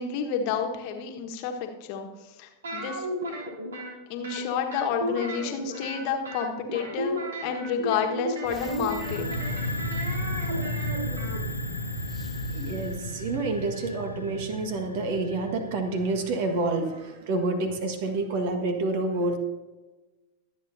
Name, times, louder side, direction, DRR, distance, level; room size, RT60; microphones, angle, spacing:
voice 1, 0.0-2.1 2.4-3.1 4.1-9.3, left 6 dB, 45° left, 3 dB, 1.4 m, -30 dB
sound 1, 2.6-3.9 4.2-6.0 6.3-11.4, equal, 65° right, 3.2 m, -34 dB
sound 2, 8.4-13.9, left 4 dB, 25° left, 0.7 m, -42 dB
sound 3, 8.8-16.5, equal, 85° left, 1.2 m, -33 dB
voice 2, 12.5-19.4, right 2 dB, 50° right, 6 dB, 1.6 m, -28 dB
23.5 x 8.8 x 2.7 m, 1.2 s
figure-of-eight pair, 90°, 0 cm